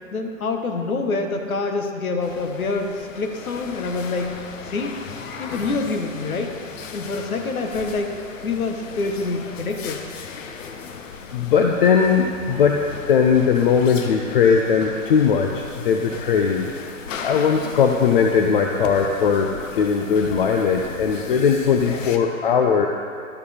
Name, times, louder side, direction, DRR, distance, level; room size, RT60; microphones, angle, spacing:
voice 1, 0.1-4.4 4.6-5.0 5.4-6.5 6.9-8.2 8.4-10.0, left 3 dB, 85° left, 4 dB, 1.1 m, -26 dB
sound 1, 2.2-22.2, left 5 dB, 65° left, 0.8 m, -37 dB
voice 2, 11.3-12.8 13.1-16.7 17.2-22.9, left 6 dB, 40° left, 2 dB, 0.5 m, -19 dB
12.5 x 4.8 x 4.2 m, 2.5 s
hypercardioid pair, 140°, 42 cm